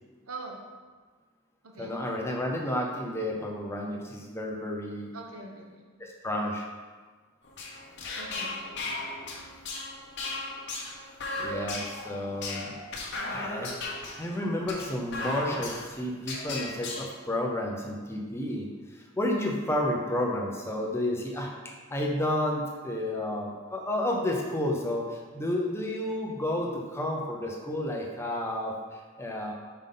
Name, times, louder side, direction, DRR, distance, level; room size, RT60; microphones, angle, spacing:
voice 1, 0.3-0.6 1.6-2.0 5.1-5.9 8.1-8.9, right 3 dB, 85° right, 1 dB, 1.0 m, -43 dB
voice 2, 1.8-5.1 6.0-6.7 11.4-12.7 13.3-29.5, left 1 dB, 10° left, 0 dB, 0.6 m, -31 dB
sound 1, 7.4-17.0, left 2 dB, 55° left, 0.9 m, -36 dB
5.5 x 5.2 x 3.8 m, 1.4 s
head